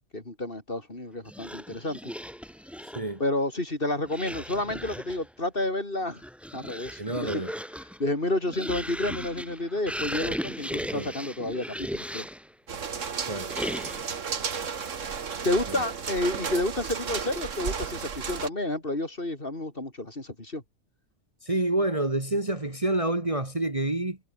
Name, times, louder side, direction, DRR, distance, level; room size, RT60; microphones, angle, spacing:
voice 1, 0.1-2.1 3.2-6.2 6.5-7.0 7.3-7.4 8.0-12.3 15.4-20.6, left 2 dB, 35° left, 4.0 m, -30 dB
sound 1, 1.3-3.2 4.0-5.3 6.0-12.5 13.5-14.2, equal, ahead, 5.6 m, -37 dB
voice 2, 7.0-7.5 10.9-11.1 13.2-13.5 15.7-15.8 21.4-24.2, right 2 dB, 20° right, 2.1 m, -28 dB
sound 2, 12.7-18.5, right 6 dB, 55° right, 1.8 m, -33 dB
omnidirectional pair, 1.6 m